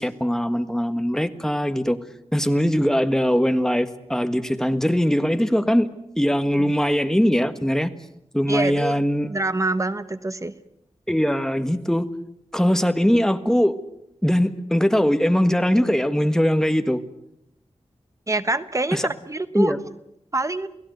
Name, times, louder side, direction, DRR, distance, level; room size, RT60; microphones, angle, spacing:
voice 1, 0.0-2.0 2.3-5.9 6.2-7.9 8.3-9.3 11.1-12.1 12.5-13.7 14.2-17.0 18.9-19.1 19.5-19.8, equal, 5° left, 9 dB, 1.5 m, -21 dB
voice 2, 8.5-9.0 9.3-10.5 18.3-19.7 20.3-20.7, right 2 dB, 30° right, 12 dB, 1.1 m, -25 dB
29.0 x 18.0 x 8.1 m, 0.79 s
wide cardioid pair, 100°, 11 cm